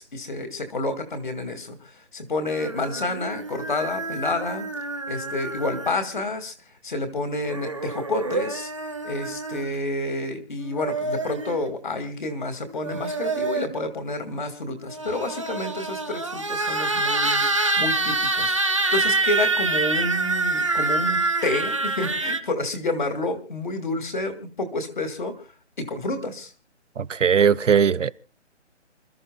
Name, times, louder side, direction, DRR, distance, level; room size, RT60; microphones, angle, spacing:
voice 1, 0.0-4.7 5.1-6.5 6.8-8.7 9.0-17.5 17.8-25.4 25.8-26.5, left 2 dB, 40° left, 2.2 m, -29 dB
sound 1, 2.5-6.2 7.4-9.7 10.6-11.6 12.7-13.8 14.8-22.4, right 3 dB, 25° right, 0.8 m, -26 dB
voice 2, 27.0-28.1, right 7 dB, 85° right, 0.8 m, -19 dB
29.0 x 13.0 x 2.3 m
hypercardioid pair, 180°, 36 cm